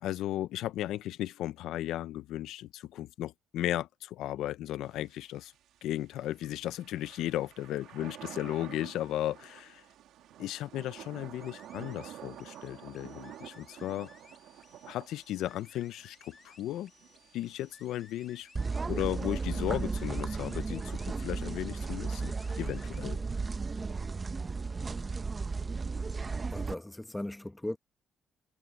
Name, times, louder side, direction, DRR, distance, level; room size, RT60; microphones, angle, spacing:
voice 1, 0.0-5.5 5.8-9.8 10.4-14.1 14.9-16.9 17.3-18.5 18.9-23.2, left 13 dB, 85° left, 0.5 m, -35 dB
Thunder / Rain, 4.8-23.1, right 12 dB, 85° right, 2.8 m, -52 dB
sound 1, 11.4-23.0, left 5 dB, 40° left, 7.5 m, -60 dB
sound 2, 18.6-26.7, right 4 dB, 30° right, 1.0 m, -34 dB
voice 2, 26.5-27.8, left 1 dB, 10° left, 1.3 m, -38 dB
cardioid pair, 90°, 0 cm